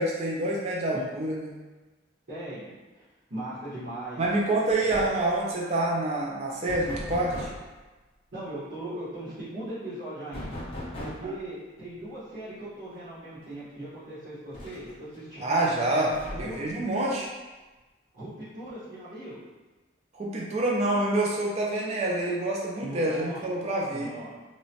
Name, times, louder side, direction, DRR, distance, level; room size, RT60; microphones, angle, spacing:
voice 1, 0.0-1.5 4.2-7.5 15.4-17.3 20.1-24.1, right 1 dB, 35° right, -3 dB, 0.3 m, -27 dB
voice 2, 2.3-3.0 3.3-4.2 8.3-10.6 11.0-16.0 16.3-16.7 18.1-19.4 22.8-23.4 23.9-24.3, right 1 dB, 60° right, -16 dB, 1.1 m, -39 dB
sound 1, 4.2-4.4 4.7-5.3 6.7-7.7 10.3-11.4 12.9-13.0 13.4-13.5 14.5-15.2 16.1-16.7, left 1 dB, 30° left, 0.6 m, -38 dB
2.9 x 2.1 x 2.7 m, 1.2 s
head